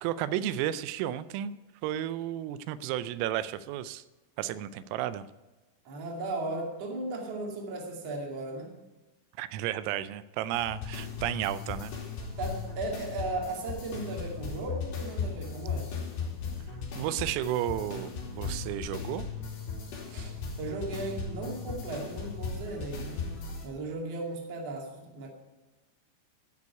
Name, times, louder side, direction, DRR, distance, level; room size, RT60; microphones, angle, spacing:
voice 1, 0.0-1.5 1.8-4.0 4.4-5.2 9.4-11.9 17.0-19.3, right 12 dB, 90° right, 15 dB, 3.3 m, -32 dB
voice 2, 5.8-8.7 12.4-15.9 20.1-23.3 23.6-25.3, right 2 dB, 40° right, 1 dB, 2.5 m, -36 dB
sound 1, 10.5-23.7, left 5 dB, 60° left, 5.0 m, -37 dB
13.0 x 7.0 x 9.5 m, 1.1 s
omnidirectional pair, 5.9 m